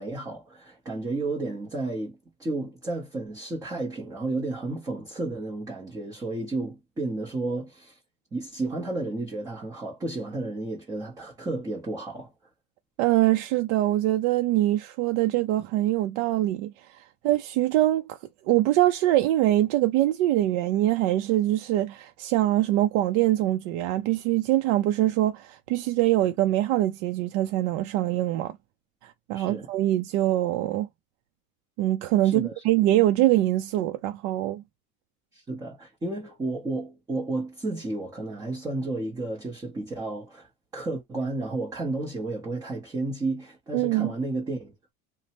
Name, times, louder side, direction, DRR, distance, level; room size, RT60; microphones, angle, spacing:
voice 1, 0.0-8.0 8.3-12.3 29.3-29.7 32.2-32.6 35.3-44.9, right 2 dB, 10° right, 0.5 m, -32 dB
voice 2, 13.0-16.7 17.2-18.0 18.5-28.5 29.0-30.9 31.8-34.6 43.7-44.1, right 15 dB, 70° right, 0.5 m, -23 dB
3.1 x 2.1 x 2.8 m
cardioid pair, 180°, 36 cm